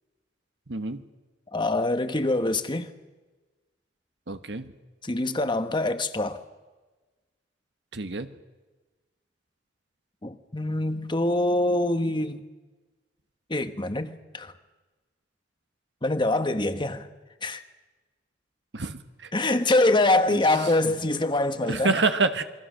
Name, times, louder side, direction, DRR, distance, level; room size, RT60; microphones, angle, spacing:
voice 1, 0.7-1.0 4.3-4.7 7.9-8.3 18.7-19.0 20.3-20.4 21.7-22.4, right 3 dB, 75° right, 1.3 m, -26 dB
voice 2, 1.5-2.9 5.0-6.4 10.2-12.4 13.5-14.5 16.0-17.1 17.4-17.6 19.3-22.0, left 2 dB, 25° left, 1.3 m, -24 dB
28.0 x 22.0 x 6.5 m
head